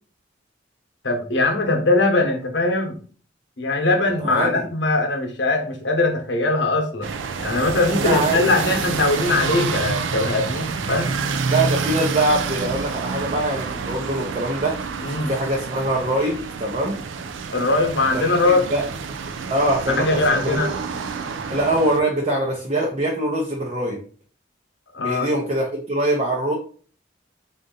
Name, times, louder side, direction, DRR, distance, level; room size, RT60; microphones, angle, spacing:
voice 1, 1.0-3.0 3.6-7.1 7.4-11.1 15.0-15.3 17.5-18.6 19.9-20.7 24.9-25.3, left 2 dB, 70° left, 3 dB, 0.9 m, -21 dB
voice 2, 4.2-4.7 8.0-8.5 11.5-14.8 15.3-17.0 18.1-18.8 19.5-20.7 21.5-24.0 25.0-26.5, right 1 dB, 35° right, -2 dB, 0.7 m, -23 dB
sound 1, 7.0-22.0, right 5 dB, 85° right, 0.4 m, -28 dB
3.9 x 2.5 x 3.7 m, 0.42 s
head